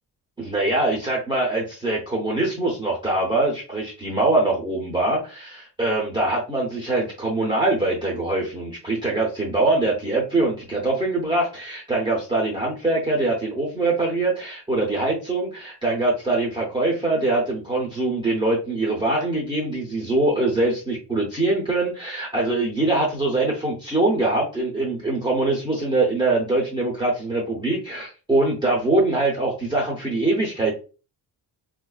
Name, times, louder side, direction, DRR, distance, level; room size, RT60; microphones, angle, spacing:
voice 1, 0.4-30.7, right 2 dB, 10° right, -4 dB, 0.6 m, -23 dB
3.6 x 2.4 x 2.3 m, 0.34 s
wide cardioid pair, 170°, 43 cm